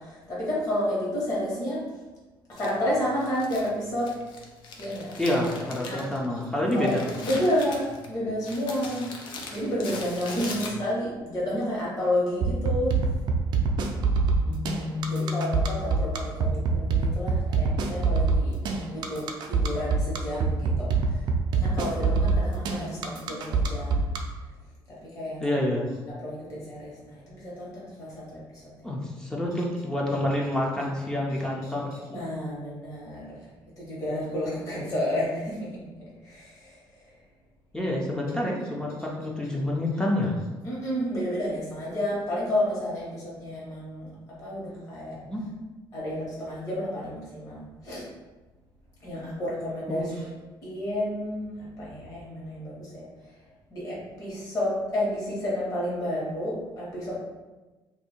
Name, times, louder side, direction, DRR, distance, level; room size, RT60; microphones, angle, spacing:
voice 1, 0.0-1.8 2.6-4.1 4.8-5.1 5.8-6.0 6.7-6.9 7.2-9.1 9.5-13.0 15.1-21.2 21.6-24.0 24.9-25.5 26.2-28.6 32.1-33.4 33.8-35.7 36.2-36.8 40.6-44.1 44.4-45.2 45.9-48.0 49.0-50.3 50.6-53.1 53.7-57.2, left 1 dB, 40° left, -6 dB, 1.3 m, -30 dB
Crumpling crinkling, 2.5-11.1, left 3 dB, 65° left, 0.5 m, -41 dB
voice 2, 5.2-7.0 14.4-15.7 25.4-25.9 28.8-31.9 37.7-40.3 45.3-45.4 49.9-50.1, left 1 dB, 10° left, -2 dB, 0.5 m, -28 dB
sound 1, 12.4-24.2, right 4 dB, 60° right, 0.4 m, -24 dB
2.7 x 2.7 x 4.3 m, 1.2 s
cardioid pair, 180°, 9 cm